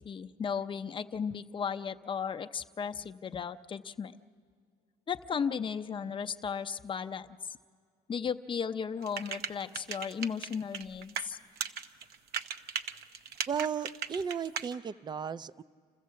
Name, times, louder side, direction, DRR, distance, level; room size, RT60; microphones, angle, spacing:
voice 1, 0.0-4.2 5.1-7.3 8.1-11.4, left 6 dB, 30° left, 8 dB, 0.6 m, -35 dB
sound 1, 9.0-11.3 11.6-14.7, right 7 dB, 70° right, 0.8 m, -36 dB
voice 2, 13.5-15.6, right 7 dB, 25° right, 17 dB, 0.4 m, -35 dB
27.5 x 15.0 x 7.5 m, 2.2 s
cardioid pair, 110°, 17 cm